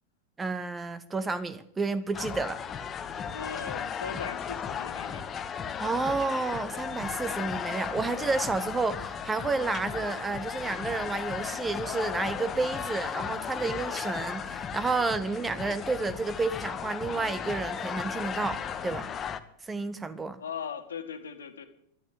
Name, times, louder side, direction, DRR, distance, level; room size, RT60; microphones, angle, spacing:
voice 1, 0.4-2.6 5.8-19.1 19.6-20.4, right 3 dB, 15° right, 15 dB, 0.9 m, -31 dB
sound 1, 2.1-19.4, left 7 dB, 25° left, 1.0 m, -35 dB
voice 2, 3.3-5.3 20.4-21.6, left 7 dB, 65° left, 7 dB, 1.9 m, -39 dB
12.0 x 11.5 x 9.2 m, 0.74 s
figure-of-eight pair, 90°, 0 cm